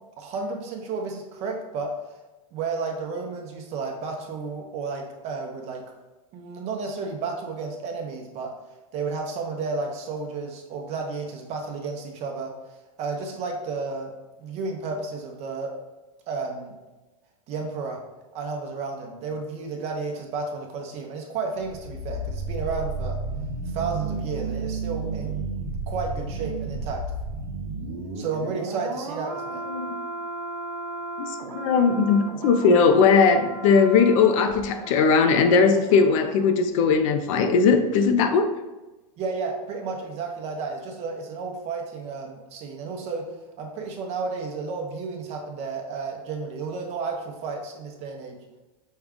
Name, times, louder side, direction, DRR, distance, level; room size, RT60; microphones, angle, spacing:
voice 1, 0.2-1.9 2.5-5.8 6.3-8.5 8.9-12.5 13.0-14.1 14.4-15.7 16.3-16.7 17.5-18.0 18.3-23.2 23.7-25.4 25.9-27.0 28.2-29.6 39.2-43.3 43.6-48.4, right 4 dB, 35° right, 2 dB, 0.7 m, -32 dB
sound 1, 21.6-36.5 36.8-37.0, right 3 dB, 75° right, 0.8 m, -33 dB
voice 2, 31.2-38.5, left 5 dB, 60° left, 7 dB, 0.5 m, -19 dB
5.4 x 2.3 x 3.6 m, 1.1 s
supercardioid pair, 140°, 19 cm